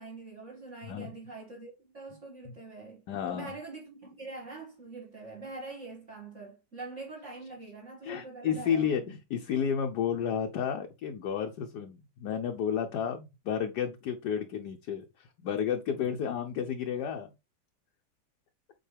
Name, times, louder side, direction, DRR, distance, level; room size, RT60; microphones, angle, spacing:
voice 1, 0.0-9.0, right 3 dB, 40° right, 2.4 m, -44 dB
voice 2, 3.1-3.5 8.0-17.3, left 8 dB, 65° left, 1.2 m, -32 dB
7.7 x 4.5 x 3.3 m
omnidirectional pair, 2.1 m